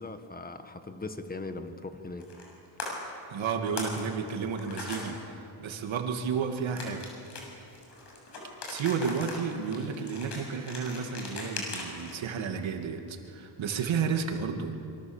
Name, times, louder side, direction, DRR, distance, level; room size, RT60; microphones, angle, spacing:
voice 1, 0.0-2.3, left 3 dB, 20° left, 8 dB, 1.5 m, -39 dB
sound 1, 2.2-2.5 2.8-2.9 3.5-5.0 6.8-12.1, left 3 dB, 55° left, 7.0 m, -39 dB
voice 2, 3.3-7.1 8.7-14.7, right 6 dB, 70° right, 4 dB, 2.5 m, -32 dB
27.0 x 23.5 x 7.3 m, 2.7 s
cardioid pair, 135°, 48 cm